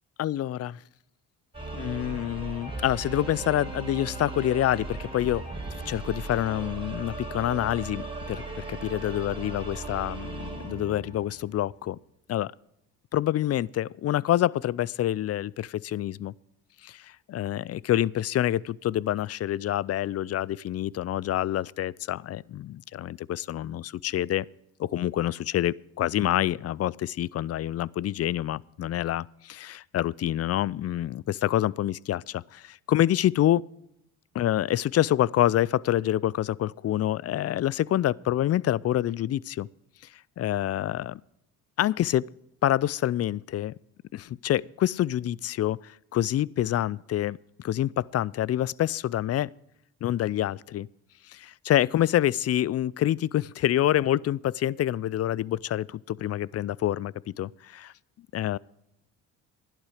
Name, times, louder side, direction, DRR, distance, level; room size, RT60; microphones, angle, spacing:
voice 1, 0.2-0.7 1.7-12.0 12.3-12.5 13.1-16.3 16.8-24.5 24.8-33.6 34.3-39.7 40.4-41.2 41.8-42.2 42.6-43.7 44.1-49.5 50.0-50.9 51.3-57.9 58.3-58.6, left 12 dB, 45° left, 0.4 m, -27 dB
sound 1, 1.5-11.5, right 3 dB, 15° right, 6.2 m, -37 dB
12.0 x 11.0 x 4.9 m
supercardioid pair, 70°, 37 cm